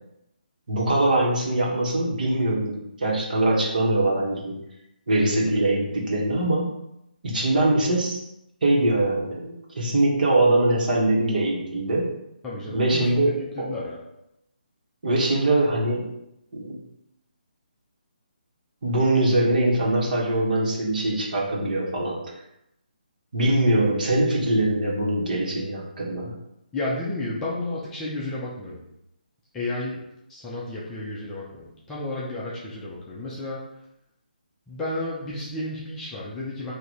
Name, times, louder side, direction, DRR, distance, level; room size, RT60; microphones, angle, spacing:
voice 1, 0.7-4.6 5.1-6.7 7.2-8.2 8.6-12.1 12.7-13.8 15.0-16.1 16.5-16.8 18.8-22.2 23.3-26.3, right 1 dB, 55° right, -3 dB, 1.6 m, -22 dB
voice 2, 12.4-14.0 26.7-28.8 29.5-30.0 30.3-33.6 34.7-36.7, left 2 dB, 10° left, -7 dB, 0.6 m, -32 dB
3.9 x 2.8 x 4.8 m, 0.83 s
hypercardioid pair, 160°, 5 cm